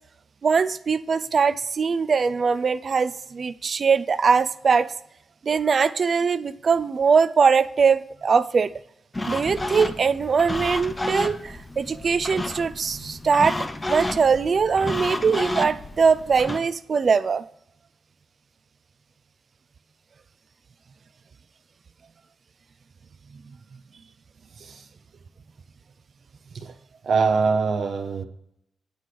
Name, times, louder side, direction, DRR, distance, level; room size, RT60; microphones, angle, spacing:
voice 1, 0.4-4.9 5.4-8.7 9.3-13.6 13.9-17.4, right 5 dB, 50° right, 0.3 m, -21 dB
sound 1, 9.1-16.6, left 1 dB, 20° left, 0.6 m, -31 dB
voice 2, 27.0-28.2, right 5 dB, 70° right, 0.7 m, -23 dB
9.2 x 3.3 x 5.8 m
cardioid pair, 85°, 0 cm